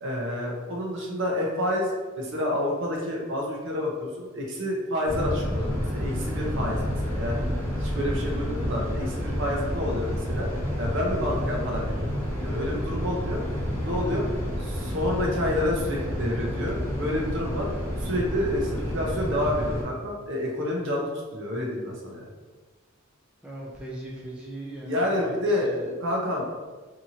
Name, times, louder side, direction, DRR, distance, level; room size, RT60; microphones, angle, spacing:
voice 1, 0.0-7.4 7.8-10.5 10.8-12.1 12.4-13.4 13.8-14.2 14.6-17.7 18.0-22.2 24.8-26.5, left 1 dB, 55° right, -1 dB, 0.6 m, -29 dB
sound 1, 5.1-19.8, equal, 10° left, 0.9 m, -29 dB
voice 2, 9.4-9.7 23.4-25.3 25.6-25.8, right 2 dB, 5° right, -6 dB, 0.3 m, -38 dB
2.8 x 2.6 x 2.7 m, 1.3 s
head